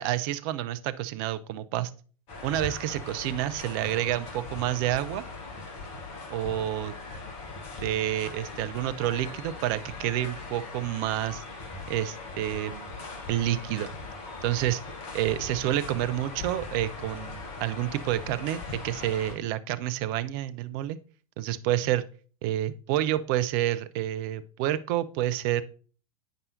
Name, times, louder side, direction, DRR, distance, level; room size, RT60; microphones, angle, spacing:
voice 1, 0.0-1.9 2.4-5.2 6.3-7.0 7.8-11.4 11.9-13.0 13.3-13.9 14.4-14.8 15.1-21.0 21.4-22.1 22.4-25.6, right 13 dB, 40° right, 14 dB, 0.4 m, -29 dB
sound 1, 2.3-19.3, left 3 dB, 40° left, 1.4 m, -40 dB
9.0 x 5.4 x 2.7 m, 0.41 s
figure-of-eight pair, 95°, 18 cm